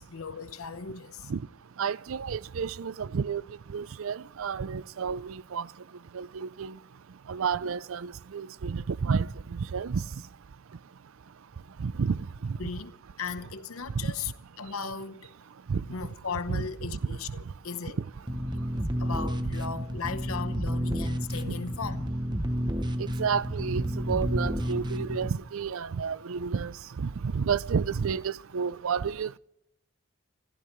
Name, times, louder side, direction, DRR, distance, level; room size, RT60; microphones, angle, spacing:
voice 1, 0.0-1.3 12.6-12.9 13.2-14.3 14.6-15.3 15.9-18.0 19.0-22.2, left 5 dB, 80° left, 0.9 m, -37 dB
voice 2, 1.8-5.7 6.1-6.8 7.3-10.2 11.8-12.7 13.9-14.1 15.7-15.9 16.5-17.2 17.5-17.6 17.8-18.1 20.6-20.7 21.5-21.6 23.0-29.4, right 6 dB, 75° right, 0.5 m, -31 dB
sound 1, 18.3-25.3, equal, 20° right, 0.8 m, -31 dB
25.0 x 15.0 x 3.2 m
head